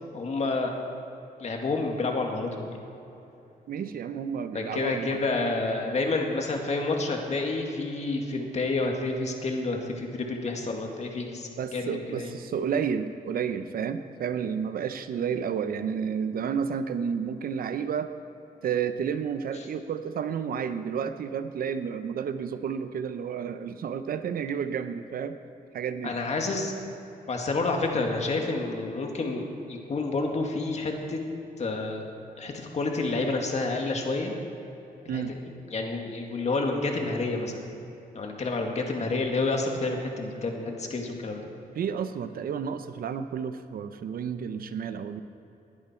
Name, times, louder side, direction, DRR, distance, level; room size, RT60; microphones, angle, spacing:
voice 1, 0.1-0.7 1.4-2.8 4.5-12.3 26.0-26.7 27.3-31.2 31.6-32.1 32.4-34.3 35.1-35.2 35.7-37.7 38.1-41.5, left 3 dB, 45° left, 2 dB, 2.1 m, -29 dB
voice 2, 3.7-5.2 11.6-18.1 18.6-25.4 25.7-26.1 35.1-35.3 41.8-45.2, right 7 dB, 70° right, 10 dB, 0.7 m, -31 dB
19.5 x 11.0 x 4.4 m, 3.0 s
cardioid pair, 105°, 16 cm